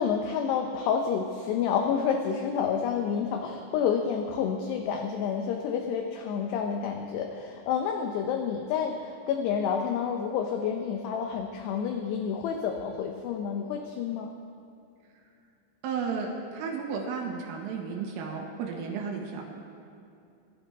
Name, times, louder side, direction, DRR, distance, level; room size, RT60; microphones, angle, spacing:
voice 1, 0.0-14.3, left 7 dB, 80° left, 3 dB, 2.5 m, -29 dB
voice 2, 15.8-19.4, right 5 dB, 90° right, 0 dB, 4.2 m, -33 dB
22.0 x 15.0 x 3.6 m, 2.5 s
omnidirectional pair, 5.7 m